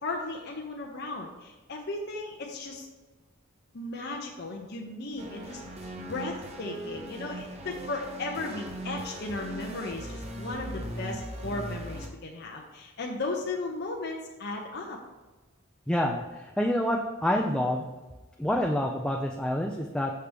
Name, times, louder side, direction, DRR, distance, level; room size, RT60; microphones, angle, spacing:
voice 1, 0.0-2.9 3.7-5.6 6.0-15.0, left 2 dB, 50° left, 0 dB, 0.7 m, -36 dB
sound 1, 5.2-12.1, right 1 dB, 30° right, 0.7 m, -39 dB
voice 2, 15.9-16.2 16.6-17.9 18.4-20.1, left 1 dB, 5° left, 0 dB, 0.4 m, -27 dB
6.6 x 5.8 x 3.4 m, 1.2 s
head